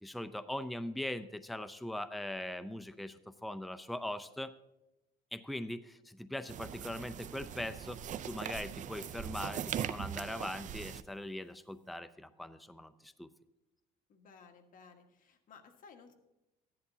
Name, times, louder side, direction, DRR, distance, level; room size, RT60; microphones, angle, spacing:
voice 1, 0.0-4.5 5.3-13.3, left 1 dB, ahead, 11 dB, 0.5 m, -41 dB
sound 1, 6.5-11.0, right 9 dB, 50° right, 0.5 m, -41 dB
voice 2, 14.1-16.1, left 5 dB, 55° left, 3 dB, 1.6 m, -57 dB
14.5 x 10.5 x 2.8 m, 0.95 s
cardioid pair, 110°, 17 cm